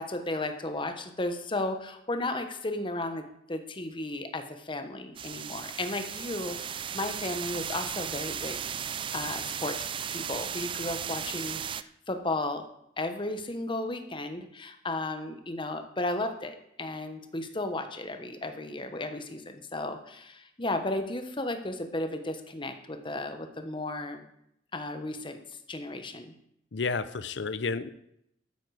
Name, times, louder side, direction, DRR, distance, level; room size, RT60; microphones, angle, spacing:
voice 1, 0.0-3.2 3.5-8.6 9.1-9.8 10.1-12.6 13.0-24.3 24.7-25.4 25.7-26.3, left 2 dB, 30° left, 7 dB, 1.2 m, -34 dB
sound 1, 5.1-11.8, right 8 dB, 30° right, 0.4 m, -36 dB
voice 2, 26.7-27.9, left 4 dB, 75° left, 14 dB, 0.6 m, -31 dB
13.0 x 9.1 x 4.9 m, 0.77 s
head